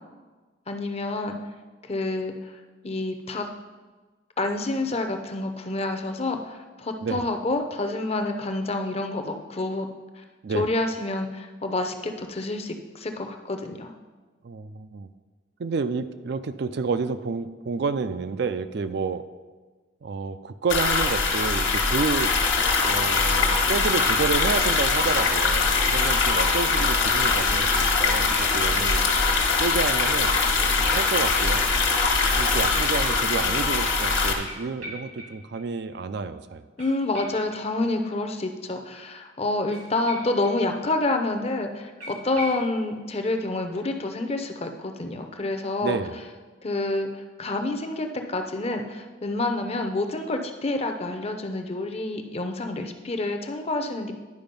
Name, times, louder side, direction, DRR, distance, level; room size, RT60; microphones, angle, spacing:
voice 1, 0.7-1.4 1.8-2.5 2.8-3.5 4.4-9.9 10.2-10.3 10.5-13.9 36.8-46.0 46.6-54.1, left 2 dB, 30° left, 6 dB, 0.6 m, -28 dB
voice 2, 14.4-15.1 15.6-19.3 20.0-22.3 22.8-29.1 29.6-30.4 30.9-31.7 32.4-36.6 45.8-46.1, right 4 dB, 55° right, 11 dB, 0.4 m, -29 dB
sound 1, 20.7-34.3, left 4 dB, 65° left, 1.4 m, -22 dB
sound 2, 34.4-35.6 35.9-36.0 36.3-36.4 36.8-38.3 39.7-40.9 41.2-41.3 41.5-41.6 42.0-42.7, right 1 dB, 90° right, 2.9 m, -42 dB
10.5 x 4.8 x 5.3 m, 1.3 s
head